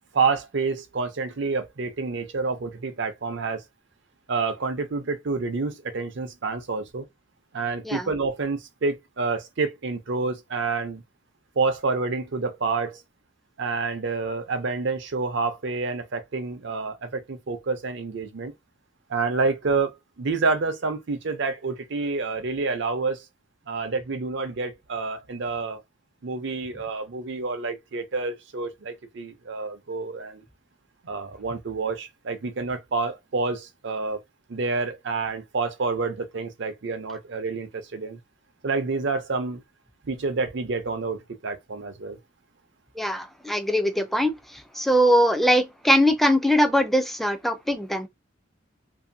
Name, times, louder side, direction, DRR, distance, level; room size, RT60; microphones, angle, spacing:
voice 1, 0.1-3.6 4.3-7.0 7.5-11.0 11.6-13.0 13.6-18.5 19.1-23.3 23.7-25.8 26.2-30.4 31.0-34.2 34.5-38.2 38.6-39.6 40.0-42.2, right 4 dB, 65° right, 0.6 m, -28 dB
voice 2, 43.0-44.3 44.8-48.1, equal, ahead, 0.4 m, -21 dB
2.7 x 2.7 x 2.6 m
head